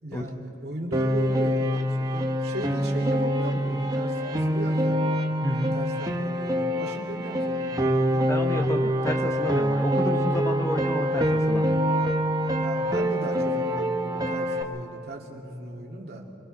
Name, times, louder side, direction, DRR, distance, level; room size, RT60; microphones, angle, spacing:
voice 1, 0.0-5.0 5.7-8.3 12.6-16.2, right 1 dB, 60° right, -1 dB, 2.5 m, -36 dB
Piano, 0.9-14.6, equal, 20° right, 1.1 m, -25 dB
voice 2, 5.4-5.7 8.3-11.8, equal, 15° left, 4 dB, 0.9 m, -30 dB
28.5 x 23.0 x 4.2 m, 2.9 s
head